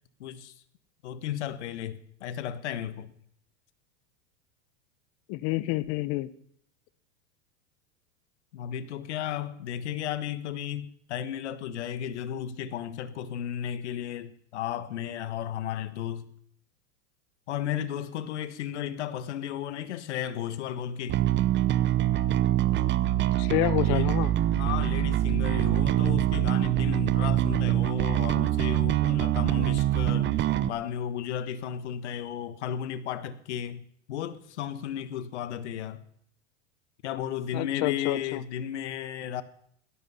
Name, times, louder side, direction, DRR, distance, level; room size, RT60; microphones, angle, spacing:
voice 1, 0.2-0.5 1.0-3.1 8.5-16.2 17.5-21.2 23.8-24.1 24.5-30.3 30.7-36.0 37.0-39.4, left 9 dB, 75° left, 1.4 m, -34 dB
voice 2, 5.3-6.3 23.4-24.3 37.5-38.4, left 18 dB, 50° left, 1.0 m, -28 dB
Bass guitar, 21.1-30.7, right 13 dB, 30° right, 0.9 m, -24 dB
17.0 x 12.5 x 5.7 m
hypercardioid pair, 100°, 35 cm